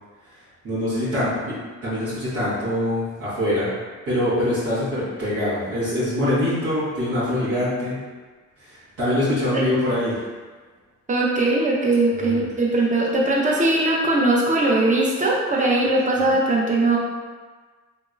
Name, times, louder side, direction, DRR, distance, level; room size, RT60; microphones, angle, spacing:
voice 1, 0.6-1.5 1.8-3.7 4.0-8.0 8.6-10.2 12.2-12.4 16.1-16.2, left 1 dB, 85° right, -12 dB, 1.5 m, -24 dB
voice 2, 11.1-17.0, right 2 dB, 25° right, -3 dB, 0.7 m, -20 dB
3.0 x 2.8 x 2.4 m, 1.4 s
cardioid pair, 90°, 30 cm